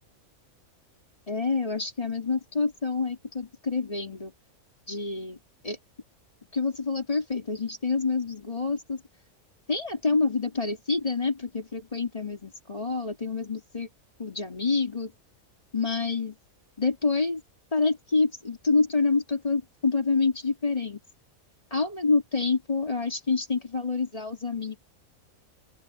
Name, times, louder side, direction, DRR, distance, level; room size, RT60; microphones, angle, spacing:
voice 1, 1.3-4.3 4.9-5.4 5.6-5.8 6.5-9.0 9.7-13.9 14.2-15.1 15.7-16.4 16.8-17.4 17.7-21.0 21.7-24.8, left 4 dB, 25° left, 2.5 m, -27 dB
open air
omnidirectional pair, 1.4 m